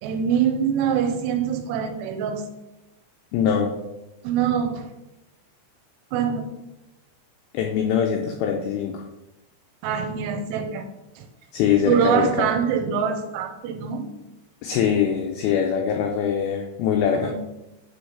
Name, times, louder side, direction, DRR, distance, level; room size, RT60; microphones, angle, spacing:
voice 1, 0.0-2.4 4.2-4.9 6.1-6.5 9.8-10.9 11.2-11.3 11.9-14.1 17.1-17.3, right 7 dB, 85° right, 6 dB, 2.9 m, -24 dB
voice 2, 3.3-3.7 7.5-9.0 11.5-12.5 14.6-17.3, left 8 dB, 90° left, 2 dB, 2.1 m, -23 dB
8.4 x 3.1 x 5.7 m, 0.97 s
omnidirectional pair, 5.0 m